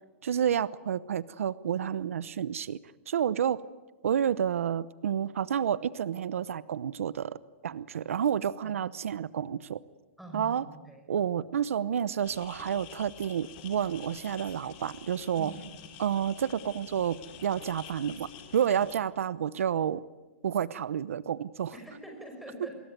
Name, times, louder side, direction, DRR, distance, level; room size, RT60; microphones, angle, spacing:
voice 1, 0.2-2.8 3.1-3.6 4.0-7.4 7.6-9.8 10.3-10.6 11.1-15.5 16.0-20.0 20.4-21.7, right 9 dB, 90° right, 18 dB, 0.9 m, -30 dB
voice 2, 10.2-11.1 15.4-15.6 21.7-22.8, right 1 dB, ahead, 2 dB, 5.8 m, -44 dB
sound 1, 12.2-18.9, left 8 dB, 40° left, 3.7 m, -48 dB
26.0 x 22.0 x 9.3 m, 1.2 s
hypercardioid pair, 155°, 7 cm